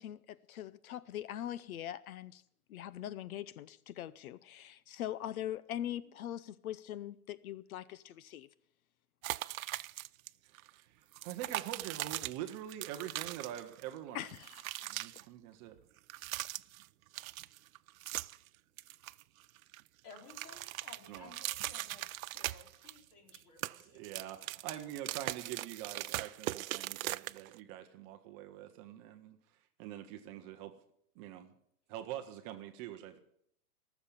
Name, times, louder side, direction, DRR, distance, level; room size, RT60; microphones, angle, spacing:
voice 1, 0.0-2.4 2.7-8.5 14.1-14.9, left 11 dB, 70° left, 0.7 m, -42 dB
sound 1, 9.2-10.3 10.5-10.7 11.1-13.9 14.2-15.2 16.0-16.9 17.1-18.5 18.8-19.8 20.1-23.0 23.3-27.6, right 16 dB, 65° right, 0.5 m, -40 dB
voice 2, 10.4-14.3 14.9-15.8 21.1-21.3 23.9-29.4 29.8-30.7 31.2-31.5 31.9-33.2, right 12 dB, 25° right, 0.7 m, -45 dB
voice 3, 20.0-22.0 22.3-24.1, left 4 dB, 40° left, 3.9 m, -56 dB
18.5 x 7.2 x 8.3 m
hypercardioid pair, 155°, 44 cm